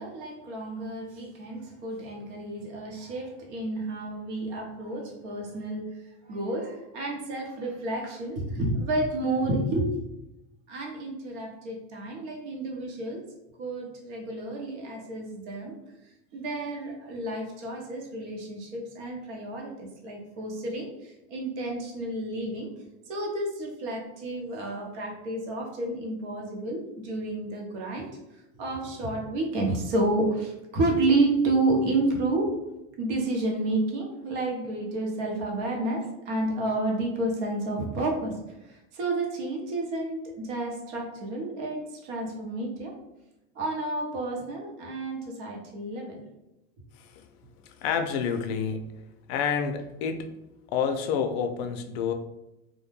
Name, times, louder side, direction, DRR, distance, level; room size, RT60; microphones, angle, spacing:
voice 1, 0.0-5.9 6.3-10.0 10.7-13.2 13.6-15.8 16.3-22.7 23.1-28.1 28.5-32.5 33.0-38.3 38.6-42.9 43.5-46.2, right 2 dB, 80° right, 0 dB, 0.9 m, -30 dB
voice 2, 47.6-48.8 49.3-50.3 50.7-52.1, left 6 dB, 65° left, 6 dB, 0.4 m, -28 dB
2.2 x 2.1 x 3.1 m, 0.91 s
supercardioid pair, 130°, 35 cm